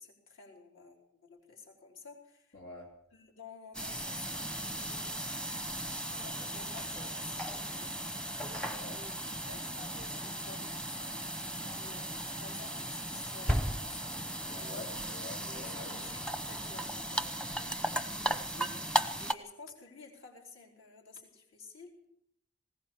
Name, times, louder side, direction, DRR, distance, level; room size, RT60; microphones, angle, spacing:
voice 1, 0.0-2.6 3.1-5.1 6.0-7.9 8.8-14.2 15.4-22.1, left 4 dB, 65° left, -1 dB, 4.7 m, -52 dB
voice 2, 2.5-2.9 8.6-9.0 14.5-16.2, left 2 dB, 85° left, -1 dB, 3.5 m, -47 dB
sound 1, 3.7-19.3, right 1 dB, 5° left, 0.9 m, -36 dB
20.5 x 18.0 x 7.4 m, 0.73 s
head